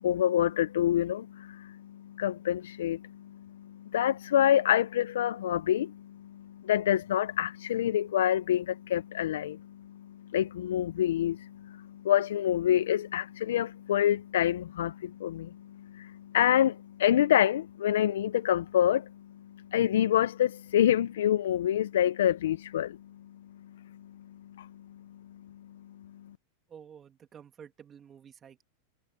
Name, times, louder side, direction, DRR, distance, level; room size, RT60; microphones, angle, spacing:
voice 1, 0.0-23.0 23.9-24.0 24.6-25.0 26.0-26.1, left 11 dB, 85° left, 0.4 m, -27 dB
voice 2, 26.7-28.6, right 8 dB, 25° right, 2.0 m, -51 dB
supercardioid pair, 140°, 0 cm